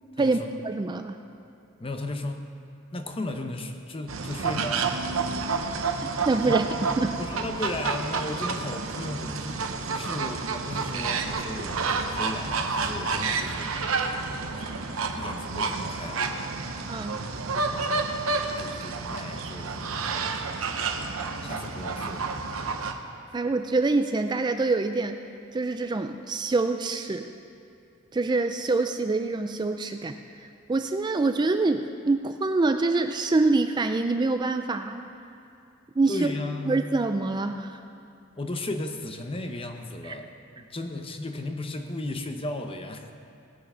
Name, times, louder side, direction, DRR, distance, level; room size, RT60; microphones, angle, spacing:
voice 1, 0.1-0.5 1.8-2.5 2.9-4.9 6.5-6.9 7.2-13.7 15.1-16.3 17.7-20.6 21.4-22.3 36.1-36.8 38.4-43.1, left 2 dB, 25° left, 6 dB, 0.8 m, -35 dB
voice 2, 0.6-1.2 5.3-5.4 6.0-6.7 7.0-7.1 16.9-17.2 23.3-25.2 25.5-27.3 28.1-35.1 36.0-36.3 36.7-37.8 40.1-40.2, right 3 dB, 20° right, 7 dB, 0.3 m, -25 dB
sound 1, 4.1-22.9, right 4 dB, 75° right, 0.8 m, -30 dB
18.5 x 6.5 x 5.6 m, 2.6 s
head